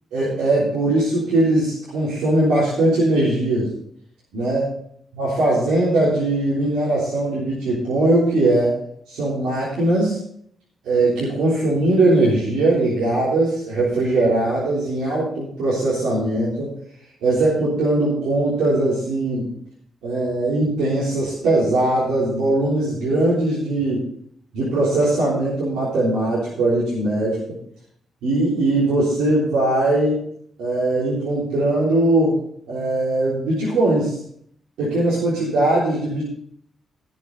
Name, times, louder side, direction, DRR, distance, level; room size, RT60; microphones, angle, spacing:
voice 1, 0.1-3.7 4.3-4.7 5.1-8.8 9.1-10.2 10.8-16.7 17.2-19.5 20.0-24.0 24.5-27.4 28.2-30.2 30.6-32.4 32.7-34.2 34.8-36.3, right 2 dB, 85° right, -8 dB, 3.6 m, -20 dB
17.0 x 6.4 x 4.0 m, 0.66 s
supercardioid pair, 60°, 0 cm